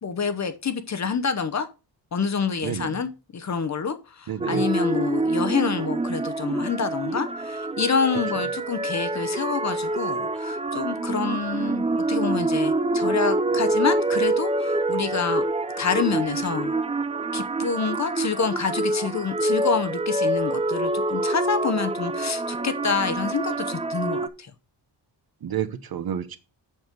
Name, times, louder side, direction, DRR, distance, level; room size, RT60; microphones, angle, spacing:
voice 1, 0.0-1.7 2.1-15.4 15.8-16.7 17.3-24.5, left 5 dB, 40° left, 0.9 m, -27 dB
voice 2, 2.6-3.0 4.3-4.7 25.4-26.4, right 9 dB, 55° right, 0.9 m, -30 dB
sound 1, 4.4-24.3, right 2 dB, 15° right, 0.4 m, -26 dB
7.5 x 6.1 x 5.1 m
wide cardioid pair, 170°, 45 cm